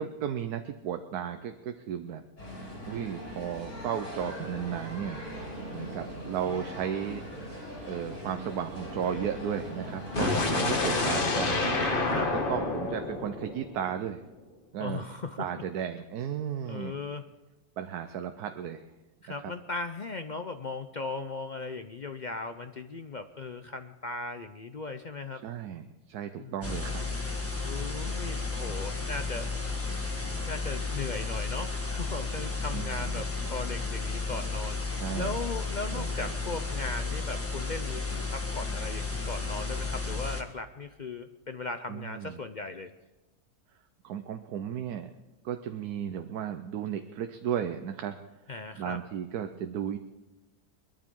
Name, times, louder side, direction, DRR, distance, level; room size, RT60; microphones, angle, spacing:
voice 1, 0.0-2.2 2.9-5.2 5.7-7.2 7.9-11.6 12.5-14.2 14.7-15.0 15.4-16.9 17.8-18.8 19.4-19.5 25.3-27.0 32.7-33.2 35.0-35.4 35.9-36.3 41.9-42.4 44.0-45.1 45.4-48.2 48.8-50.0, right 9 dB, 90° right, 7 dB, 1.3 m, -34 dB
sound 1, 2.4-10.8, equal, 85° left, 7.8 m, -40 dB
sound 2, 10.1-14.1, left 2 dB, 35° left, 1.5 m, -28 dB
voice 2, 14.8-15.4 16.6-17.2 19.2-25.4 26.4-27.0 27.6-29.5 30.5-34.8 35.2-42.9 48.5-49.0, left 3 dB, 55° left, 8 dB, 0.5 m, -38 dB
sound 3, 26.6-40.4, left 4 dB, 10° left, 1.4 m, -33 dB
22.0 x 13.5 x 3.7 m, 1.1 s
omnidirectional pair, 1.6 m